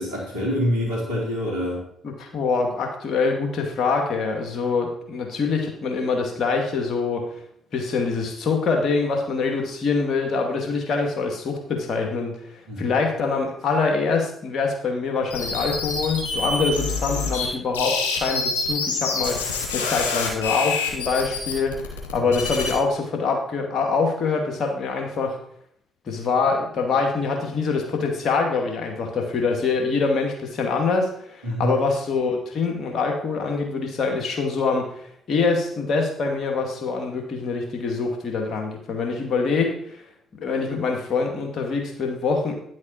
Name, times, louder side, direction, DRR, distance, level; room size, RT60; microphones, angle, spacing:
voice 1, 0.0-1.8 12.7-12.9 22.1-22.4 31.4-31.8, equal, 85° right, -5 dB, 3.4 m, -26 dB
voice 2, 2.0-7.2 7.7-21.9 22.1-25.4 26.1-40.0 40.3-42.5, left 4 dB, 55° left, 2 dB, 2.3 m, -24 dB
sound 1, 15.3-17.5 17.7-22.7, left 4 dB, 80° left, 2.1 m, -26 dB
10.5 x 7.7 x 4.4 m, 0.67 s
hypercardioid pair, 45°, 0 cm